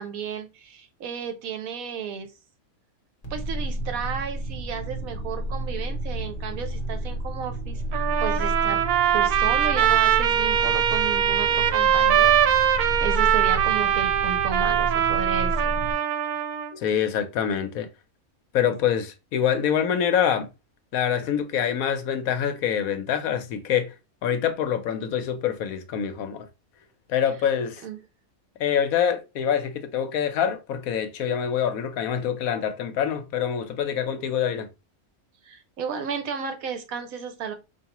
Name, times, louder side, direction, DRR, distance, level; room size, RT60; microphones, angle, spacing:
voice 1, 0.0-2.3 3.3-8.8 9.1-12.4 13.0-15.7 27.8-28.0 35.4-37.5, right 7 dB, 70° right, 1.2 m, -33 dB
sound 1, 3.2-15.9, right 1 dB, 30° left, 0.9 m, -31 dB
Trumpet, 7.9-16.7, right 10 dB, 90° right, 1.1 m, -22 dB
voice 2, 16.7-17.9 18.5-20.5 20.9-23.9 24.2-26.5 27.1-27.8 28.6-34.7, left 8 dB, 75° left, 1.1 m, -25 dB
4.6 x 2.7 x 2.9 m
omnidirectional pair, 1.6 m